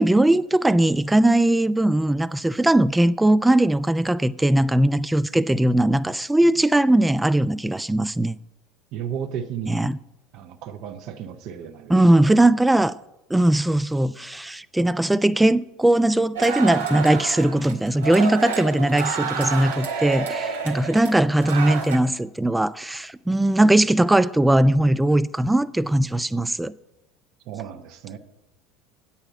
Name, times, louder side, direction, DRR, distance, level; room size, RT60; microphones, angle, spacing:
voice 1, 0.0-8.4 9.7-10.0 11.9-13.0 13.3-26.7, right 1 dB, 5° right, 0.3 m, -19 dB
voice 2, 8.9-9.9 10.3-12.3 27.5-28.2, right 8 dB, 50° right, 0.8 m, -34 dB
sound 1, 16.3-22.0, right 5 dB, 70° right, 1.1 m, -29 dB
8.8 x 5.7 x 8.0 m
figure-of-eight pair, 70°, 0 cm